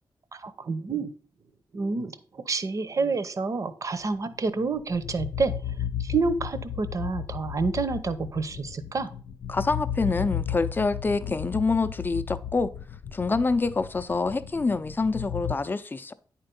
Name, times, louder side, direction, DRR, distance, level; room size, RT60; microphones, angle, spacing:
voice 1, 0.3-1.1 1.7-5.5 6.0-9.1, right 4 dB, 45° right, 0.8 m, -28 dB
sound 1, 4.5-15.5, left 9 dB, 75° left, 0.4 m, -34 dB
voice 2, 9.5-12.7 13.1-16.1, left 3 dB, 25° left, 0.5 m, -26 dB
9.7 x 4.5 x 5.3 m
wide cardioid pair, 135°, 8 cm